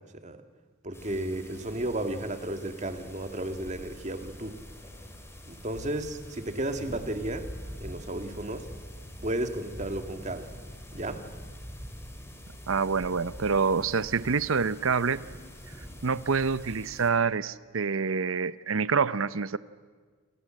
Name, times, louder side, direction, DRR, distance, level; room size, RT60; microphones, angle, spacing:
voice 1, 0.8-4.6 5.5-7.5 7.8-8.7 9.2-10.5 10.9-11.2, right 1 dB, 35° right, 7 dB, 2.0 m, -33 dB
sound 1, 0.9-17.1, equal, 10° left, 3.2 m, -45 dB
voice 2, 12.7-15.2 16.0-19.6, right 5 dB, 70° right, 16 dB, 0.7 m, -27 dB
28.0 x 27.5 x 7.7 m, 1.5 s
head